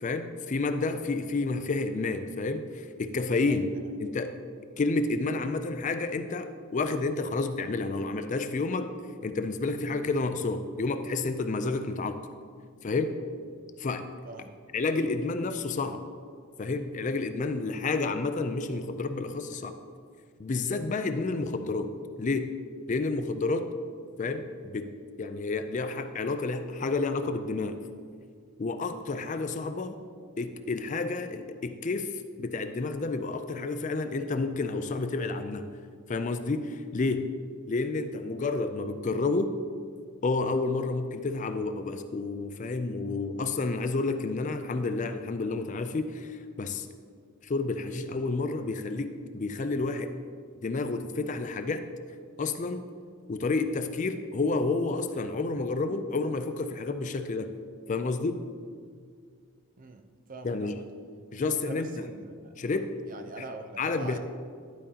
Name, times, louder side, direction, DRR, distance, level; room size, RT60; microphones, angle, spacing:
voice 1, 0.0-3.7 4.0-4.4 4.8-8.9 9.2-12.2 12.8-13.2 13.8-14.1 14.7-16.0 16.6-19.8 20.4-21.9 22.2-22.5 22.9-23.7 24.2-24.9 25.2-27.8 28.6-30.0 30.4-32.1 32.4-35.7 36.1-37.3 37.7-39.5 40.2-46.9 47.4-50.1 50.6-51.8 52.4-52.9 53.3-57.5 57.9-58.4 60.4-60.8 61.3-61.9 62.6-62.9 63.4-63.5 63.8-64.2, left 3 dB, 35° left, 9 dB, 0.4 m, -30 dB
voice 2, 3.4-3.8 14.2-14.8 59.8-60.0 60.3-60.9 61.7-62.5 63.1-64.2, right 3 dB, 40° right, 7 dB, 0.5 m, -43 dB
11.5 x 8.6 x 2.8 m, 2.1 s
head